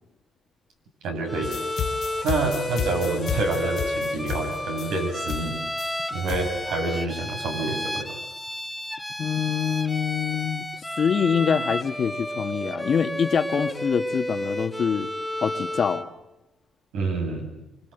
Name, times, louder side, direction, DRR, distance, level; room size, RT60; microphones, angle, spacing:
voice 1, 1.0-1.5 2.2-5.5 6.1-8.2 16.9-17.5, right 3 dB, 90° right, 2 dB, 7.8 m, -27 dB
Bowed string instrument, 1.3-16.1, left 1 dB, 5° left, 1.4 m, -32 dB
sound 1, 1.4-6.6, left 9 dB, 70° left, 2.0 m, -33 dB
voice 2, 9.2-10.7 11.0-15.1 15.4-16.1, left 7 dB, 55° left, 8 dB, 1.6 m, -25 dB
25.5 x 25.0 x 8.1 m, 0.92 s
cardioid pair, 90°, 0 cm